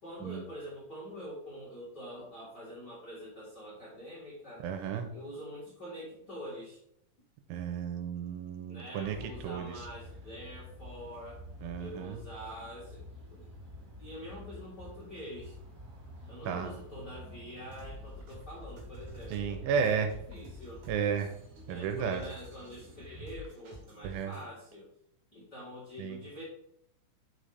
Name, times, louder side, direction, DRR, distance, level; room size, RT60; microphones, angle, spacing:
voice 1, 0.0-4.6 5.1-6.8 8.7-11.4 11.8-13.5 14.0-15.6 16.3-20.8 21.7-24.9 25.3-26.4, equal, 50° left, -8 dB, 1.2 m, -45 dB
voice 2, 4.6-5.1 7.5-9.8 11.6-12.2 16.5-16.7 19.3-20.1 20.9-21.3 21.7-22.3 24.0-24.3 26.0-26.2, right 7 dB, 85° right, 6 dB, 3.3 m, -33 dB
sound 1, 9.0-23.2, left 1 dB, 40° right, 1.4 m, -50 dB
sound 2, 17.6-24.5, equal, 70° right, 3.4 m, -49 dB
6.2 x 5.0 x 4.0 m, 0.72 s
omnidirectional pair, 5.4 m